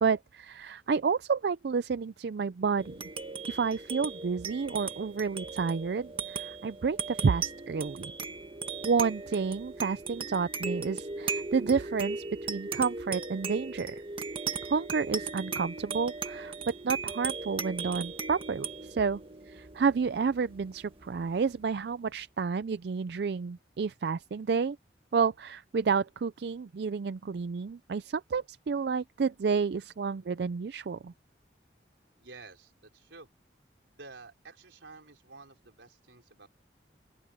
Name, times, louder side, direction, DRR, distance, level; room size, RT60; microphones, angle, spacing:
voice 1, 0.0-3.0 3.5-8.1 8.8-13.9 14.7-19.2 19.5-24.8 25.1-31.1, right 5 dB, 60° right, 0.4 m, -30 dB
sound 1, 2.8-21.6, right 4 dB, 30° right, 1.6 m, -38 dB
voice 2, 32.2-33.3 33.9-36.5, right 3 dB, 85° right, 4.4 m, -51 dB
open air
head